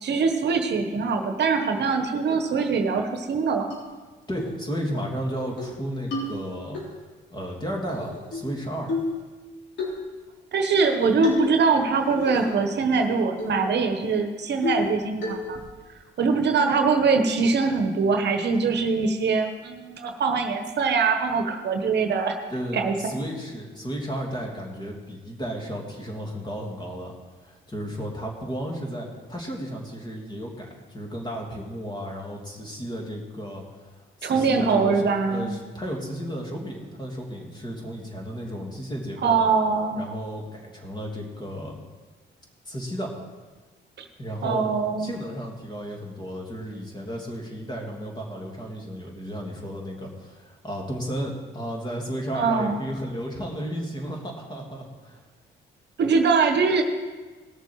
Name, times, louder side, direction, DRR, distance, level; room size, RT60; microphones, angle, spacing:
voice 1, 0.0-3.7 10.5-15.6 16.2-22.4 22.7-22.9 34.2-35.5 39.2-40.1 44.0-44.1 44.4-45.1 52.3-52.8 56.0-56.8, right 5 dB, 60° right, 5 dB, 1.2 m, -23 dB
sound 1, 3.7-3.8 4.4-4.6 4.9-5.0 5.4-5.7 6.1-6.8 7.9-8.5 8.9-9.2 9.8-10.0 11.0-11.6 11.9-12.6 13.0-13.1 13.4-13.6 14.0-14.1 14.6-14.9 15.2-15.6, left 2 dB, 65° left, 3.8 m, -29 dB
voice 2, 4.3-6.8 7.3-8.9 22.5-27.1 27.4-39.5 39.9-41.7 42.7-43.1 44.2-44.7 45.0-55.2, equal, 20° left, -1 dB, 2.9 m, -33 dB
18.5 x 6.8 x 4.8 m, 1.3 s
cardioid pair, 90°, 20 cm